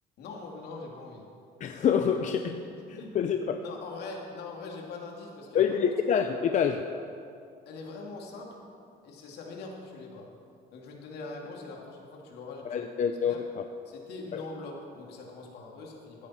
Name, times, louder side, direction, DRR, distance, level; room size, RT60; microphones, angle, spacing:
voice 1, 0.2-1.3 2.6-5.8 7.7-8.6 9.0-10.3 10.7-13.5 13.9-16.3, left 3 dB, 75° left, 0 dB, 2.4 m, -43 dB
voice 2, 1.6-2.6 2.9-3.6 5.5-6.8 12.6-13.6 14.3-14.4, left 7 dB, 45° left, 6 dB, 0.6 m, -27 dB
15.5 x 10.0 x 4.3 m, 2.5 s
cardioid pair, 110°, 17 cm